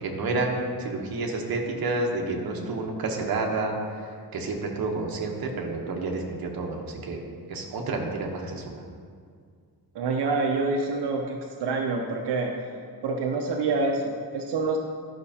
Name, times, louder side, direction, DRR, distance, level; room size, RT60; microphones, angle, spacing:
voice 1, 0.0-4.0 4.3-7.2 7.5-8.8, right 3 dB, 60° right, 0 dB, 1.0 m, -29 dB
voice 2, 9.9-12.5 13.0-14.8, right 3 dB, 85° right, 0 dB, 0.7 m, -27 dB
10.5 x 5.9 x 2.8 m, 2.1 s
wide cardioid pair, 170°, 40 cm